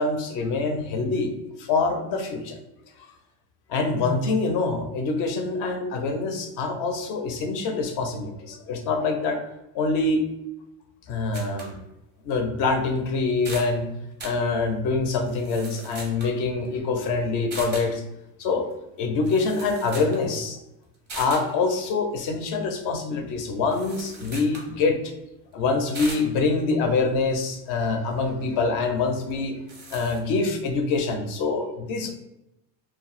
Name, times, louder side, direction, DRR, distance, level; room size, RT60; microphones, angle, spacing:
voice 1, 0.0-1.3 1.6-2.6 3.7-9.4 9.7-10.3 11.1-11.8 12.2-13.9 14.2-18.0 18.4-18.7 19.0-20.6 21.2-25.1 25.5-29.6 29.9-32.1, left 3 dB, 45° left, 5 dB, 0.4 m, -25 dB
sound 1, 11.3-11.8 12.3-12.4 13.0-13.1 13.3-13.8 14.2-14.4 15.3-16.4 17.5-17.9 19.0-19.1 19.2-20.2 20.5-20.6 21.1-21.5 23.7-24.7 25.9-26.3 29.3-29.4 29.7-30.2, right 2 dB, 20° right, 0.5 m, -39 dB
2.3 x 2.0 x 3.8 m, 0.91 s
supercardioid pair, 140°, 49 cm